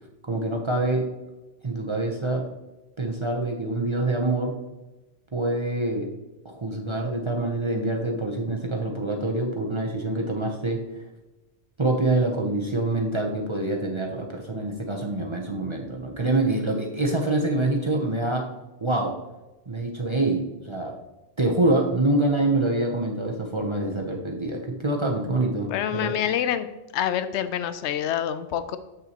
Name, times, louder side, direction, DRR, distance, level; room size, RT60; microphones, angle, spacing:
voice 1, 0.3-1.0 1.6-2.4 3.0-4.6 5.3-6.1 6.4-10.8 11.8-18.5 18.8-19.1 19.7-21.0 21.4-26.1, right 2 dB, 30° right, 1 dB, 0.8 m, -25 dB
voice 2, 25.7-26.7 26.9-28.8, left 10 dB, 75° left, 12 dB, 0.8 m, -26 dB
7.8 x 6.6 x 3.0 m, 1.1 s
omnidirectional pair, 1.2 m